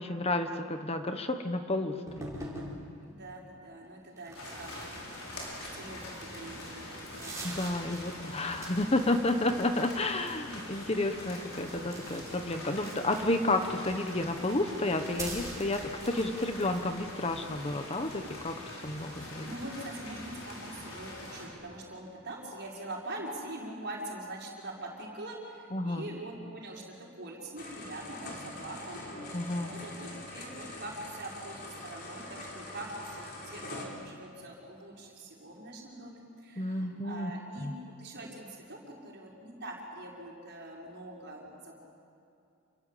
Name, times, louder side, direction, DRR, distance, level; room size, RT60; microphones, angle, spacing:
voice 1, 0.0-2.3 7.4-19.5 25.7-26.0 29.3-29.7 36.6-37.3 37.6-37.7, left 2 dB, 25° left, 7 dB, 1.1 m, -31 dB
sound 1, 2.1-2.8 4.2-6.1 6.6-6.7 7.0-9.1 9.4-9.9 11.5-13.5 14.2-16.9, right 2 dB, 15° right, 5.5 m, -45 dB
voice 2, 3.0-5.5 5.7-7.4 18.9-19.0 19.4-29.0 29.5-37.7 38.0-41.8, right 1 dB, 50° right, -2 dB, 5.5 m, -44 dB
sound 2, 4.3-21.5, left 1 dB, 65° left, 6.5 m, -44 dB
sound 3, 27.6-33.8, left 2 dB, 45° left, 4.4 m, -44 dB
28.5 x 23.0 x 8.4 m, 2.5 s
head